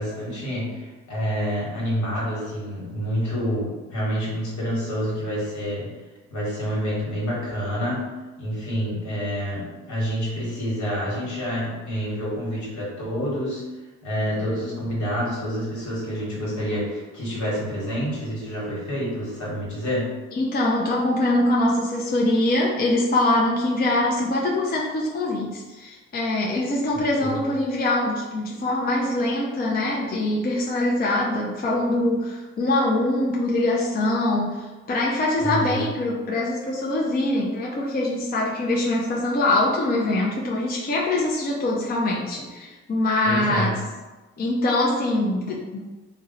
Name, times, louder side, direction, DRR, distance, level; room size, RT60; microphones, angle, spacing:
voice 1, 0.0-5.9 6.3-8.1 8.4-13.6 14.0-20.1 27.2-27.3 35.4-35.9 43.2-43.7, equal, 70° left, -6 dB, 1.3 m, -28 dB
voice 2, 20.3-43.7 44.4-45.8, left 1 dB, 30° left, -3 dB, 0.5 m, -23 dB
2.5 x 2.1 x 3.8 m, 1.2 s
supercardioid pair, 50°, 30 cm